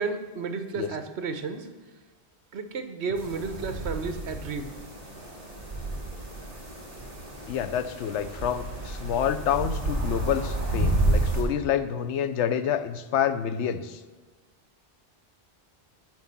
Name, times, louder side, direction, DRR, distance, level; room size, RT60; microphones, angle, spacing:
voice 1, 0.0-1.7 2.5-4.7, right 4 dB, 70° right, 8 dB, 1.1 m, -32 dB
sound 1, 3.2-11.4, right 2 dB, 35° right, 2.1 m, -30 dB
voice 2, 7.5-14.0, left 9 dB, 80° left, 11 dB, 0.9 m, -28 dB
7.6 x 6.2 x 7.2 m, 1.4 s
omnidirectional pair, 1.2 m